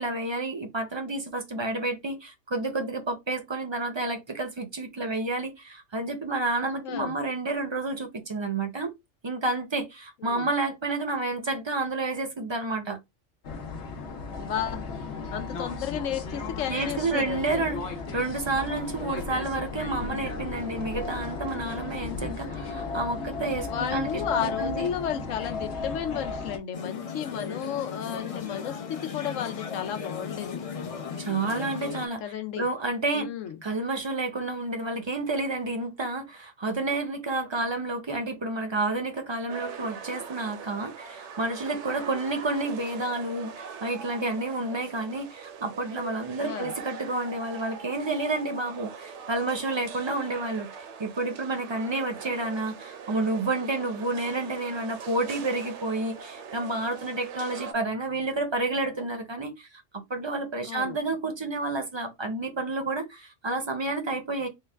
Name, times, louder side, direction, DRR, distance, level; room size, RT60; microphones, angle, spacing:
voice 1, 0.0-8.9 9.2-13.0 16.7-17.8 18.1-24.9 31.2-33.3 33.6-59.7 60.1-64.5, right 2 dB, 35° right, 0.5 m, -30 dB
voice 2, 6.8-7.2 10.2-10.5 14.4-14.9 15.3-17.7 23.7-30.6 32.2-32.7 33.1-33.6 46.4-46.8 60.7-61.0, left 9 dB, 90° left, 1.0 m, -33 dB
sound 1, 13.4-26.6, left 4 dB, 65° left, 1.0 m, -35 dB
sound 2, 26.7-32.1, left 6 dB, 45° left, 0.4 m, -36 dB
sound 3, 39.5-57.7, right 6 dB, 70° right, 0.9 m, -42 dB
3.8 x 2.2 x 3.3 m
omnidirectional pair, 1.3 m